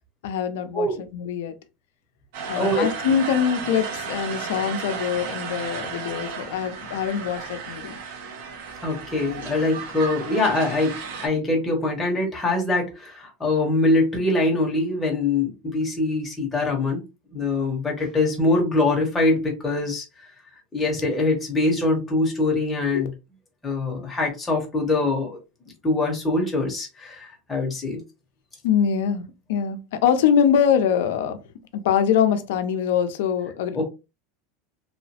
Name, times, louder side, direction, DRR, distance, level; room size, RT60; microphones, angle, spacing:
voice 1, 0.2-1.6 2.5-8.0 22.9-23.1 28.6-31.4 31.7-33.8, left 8 dB, 75° left, 0.5 m, -23 dB
sound 1, 2.3-11.3, right 5 dB, 70° right, 0.7 m, -34 dB
voice 2, 2.6-2.9 8.8-17.0 17.3-20.0 20.7-23.1 23.6-25.4 25.8-28.0 33.7-33.8, left 2 dB, 10° left, 0.9 m, -23 dB
2.9 x 2.0 x 2.8 m
supercardioid pair, 170°, 0 cm